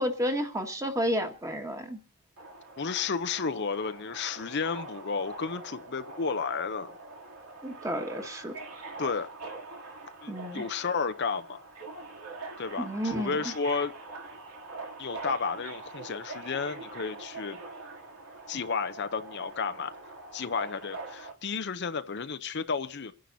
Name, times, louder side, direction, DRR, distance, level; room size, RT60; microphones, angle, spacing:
voice 1, 0.0-2.0 7.6-8.5 10.3-10.7 12.8-13.4, equal, 15° right, 1.7 m, -31 dB
Subway metro underground, 2.4-21.3, right 3 dB, 75° right, 2.8 m, -44 dB
voice 2, 2.8-6.9 9.0-9.3 10.2-11.6 12.6-13.9 15.0-17.6 18.5-19.9 20.3-23.1, left 5 dB, 50° left, 0.6 m, -32 dB
28.0 x 10.5 x 2.7 m
head